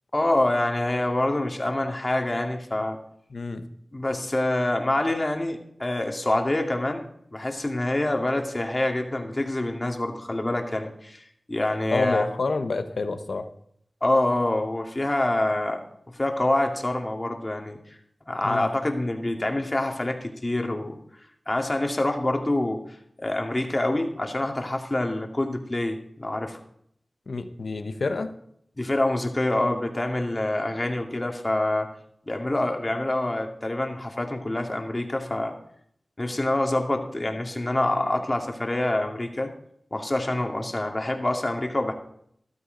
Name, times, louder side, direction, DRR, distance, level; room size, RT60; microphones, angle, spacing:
voice 1, 0.1-3.0 3.9-12.3 14.0-15.8 16.1-17.8 18.3-21.0 21.5-22.8 23.2-26.6 28.8-31.9 32.3-35.5 36.2-39.5 39.9-41.9, left 1 dB, 35° left, 3 dB, 2.2 m, -26 dB
voice 2, 3.3-3.7 11.9-13.5 18.4-18.7 27.3-28.3, left 3 dB, 80° left, 8 dB, 1.1 m, -28 dB
13.5 x 12.5 x 4.0 m, 0.69 s
cardioid pair, 40°, 0 cm